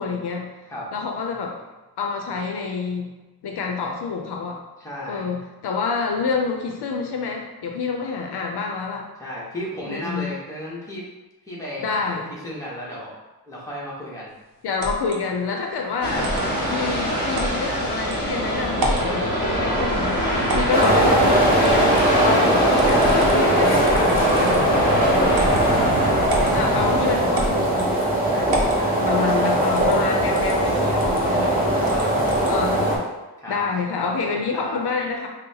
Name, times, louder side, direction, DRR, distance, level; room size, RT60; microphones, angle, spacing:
voice 1, 0.0-0.5 0.9-1.6 2.0-3.1 3.4-4.6 5.1-9.1 9.9-10.4 11.8-12.3 14.6-16.3 16.7-20.2 20.5-25.3 26.5-28.0 29.0-31.5 32.5-33.0 33.5-35.3, left 5 dB, 75° left, 2 dB, 0.5 m, -28 dB
voice 2, 4.8-5.3 9.2-11.0 11.5-12.2 12.4-13.1 13.5-14.3 22.3-22.7 25.3-25.9 26.3-26.7 28.2-29.1 31.3-32.3 33.4-34.8, left 1 dB, 10° left, -6 dB, 0.9 m, -35 dB
sound 1, 14.8-15.2 16.2-16.5 17.3-17.6 18.1-18.2 18.7-19.1 20.5-21.0 21.6-22.1 22.8-23.4 23.8-24.7 25.3-25.6 26.3-26.6 27.3-27.9 28.5-28.8 29.8-30.0 30.3-30.6 31.0-31.2 31.9-32.5, right 1 dB, 65° right, 0.7 m, -28 dB
sound 2, 16.0-27.2, equal, 25° left, 1.3 m, -23 dB
sound 3, 20.7-33.0, right 1 dB, 20° right, 0.7 m, -20 dB
5.3 x 2.1 x 2.7 m, 1.1 s
wide cardioid pair, 160°, 40 cm